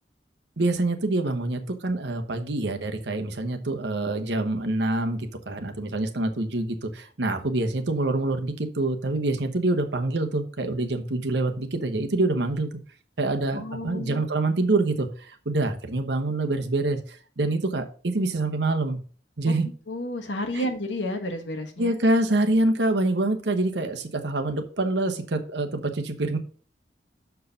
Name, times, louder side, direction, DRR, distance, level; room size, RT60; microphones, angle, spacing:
voice 1, 0.6-12.7 13.2-19.0 19.4-19.7 20.5-20.7 21.8-26.4, right 2 dB, 75° right, 6 dB, 1.0 m, -26 dB
voice 2, 13.5-14.2 19.5-19.6 19.9-21.9, left 1 dB, 85° left, 5 dB, 1.3 m, -31 dB
6.6 x 4.7 x 5.6 m, 0.41 s
head